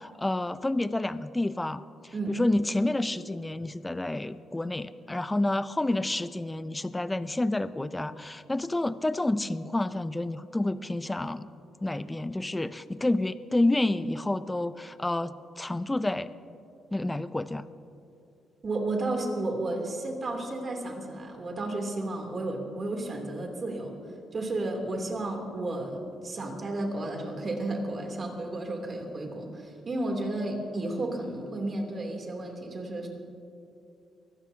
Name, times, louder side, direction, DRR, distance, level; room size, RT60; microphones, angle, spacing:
voice 1, 0.0-11.5 11.8-16.3 16.9-17.7, left 2 dB, 15° left, 14 dB, 0.5 m, -29 dB
voice 2, 18.6-23.9 24.3-33.1, right 2 dB, 40° right, 1 dB, 3.0 m, -32 dB
23.5 x 16.5 x 2.8 m, 2.6 s
cardioid pair, 90°, 0 cm